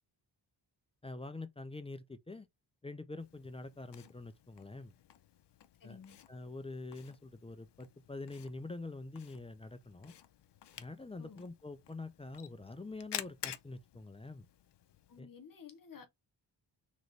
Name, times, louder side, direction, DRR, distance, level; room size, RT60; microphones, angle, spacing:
voice 1, 1.0-2.5 2.8-4.9 5.8-6.0 6.3-10.1 10.8-14.5 15.2-15.3, left 3 dB, 15° left, 0.4 m, -45 dB
Camera, 3.2-15.2, left 10 dB, 70° left, 0.6 m, -51 dB
voice 2, 5.8-6.2 11.2-11.4 15.1-16.1, left 6 dB, 50° left, 1.0 m, -53 dB
4.0 x 3.0 x 3.2 m
wide cardioid pair, 140°, 43 cm